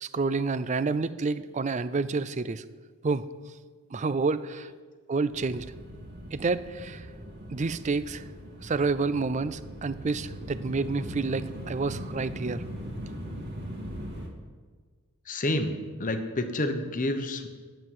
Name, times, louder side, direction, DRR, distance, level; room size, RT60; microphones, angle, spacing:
voice 1, 0.0-2.6 3.0-3.2 3.9-4.7 5.1-5.7 6.3-7.1 7.5-8.2 8.6-12.6, right 4 dB, 30° right, 15 dB, 0.4 m, -29 dB
sound 1, 5.3-14.3, equal, 50° right, 2.0 m, -40 dB
voice 2, 15.3-17.5, left 1 dB, 35° left, 7 dB, 1.0 m, -29 dB
11.0 x 7.7 x 7.4 m, 1.5 s
head